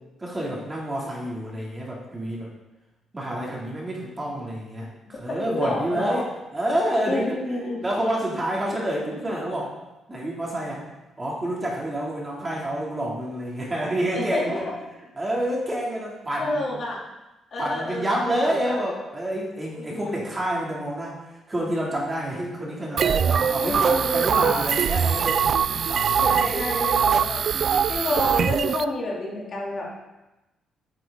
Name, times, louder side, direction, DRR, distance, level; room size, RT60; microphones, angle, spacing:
voice 1, 0.2-2.5 3.1-7.3 7.8-9.7 10.1-10.8 11.2-14.7 15.2-16.6 17.6-26.3, right 1 dB, 20° right, -3 dB, 2.8 m, -28 dB
voice 2, 5.5-6.3 7.1-7.8 14.1-14.6 16.4-17.0 17.5-18.8 19.8-20.0 23.6-24.5 26.2-27.4 27.9-30.0, left 2 dB, 50° left, -4 dB, 3.1 m, -29 dB
sound 1, 23.0-28.8, right 7 dB, 55° right, 0.3 m, -22 dB
9.6 x 7.5 x 3.8 m, 1.0 s
cardioid pair, 90°, 0 cm